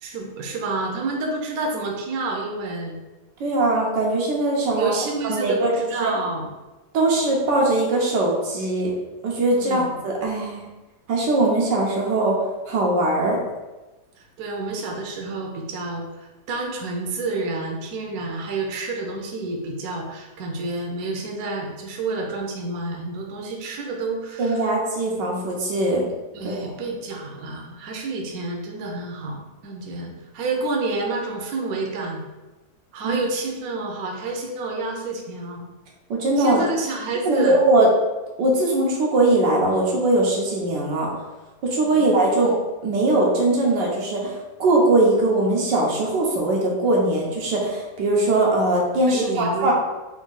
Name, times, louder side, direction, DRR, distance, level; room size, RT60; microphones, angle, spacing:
voice 1, 0.0-3.0 4.7-6.5 9.5-10.0 14.2-24.7 26.3-32.2 32.9-35.7 36.4-37.6 41.8-42.1 49.1-49.7, right 3 dB, 65° right, 1 dB, 1.0 m, -29 dB
voice 2, 3.4-4.9 5.2-5.7 6.0-6.1 6.9-8.9 9.2-10.7 11.1-12.4 12.7-13.4 24.4-26.0 26.4-26.6 33.0-33.2 36.1-36.6 37.3-37.9 38.4-41.1 41.6-42.5 42.8-49.7, right 2 dB, 85° right, -2 dB, 1.5 m, -21 dB
4.1 x 2.6 x 3.8 m, 1.1 s
omnidirectional pair, 1.9 m